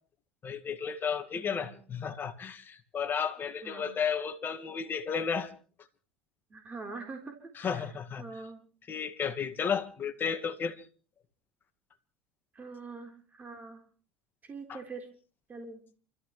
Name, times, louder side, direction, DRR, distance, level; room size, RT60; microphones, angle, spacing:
voice 1, 0.4-5.5 7.6-8.2 8.9-10.8, left 6 dB, 35° left, 6 dB, 2.0 m, -33 dB
voice 2, 1.3-1.8 3.6-3.9 6.5-8.7 12.5-13.9 14.4-15.1 15.5-15.8, right 3 dB, 30° right, 3 dB, 4.0 m, -44 dB
28.5 x 14.0 x 3.2 m, 0.40 s
hypercardioid pair, 80°, 6 cm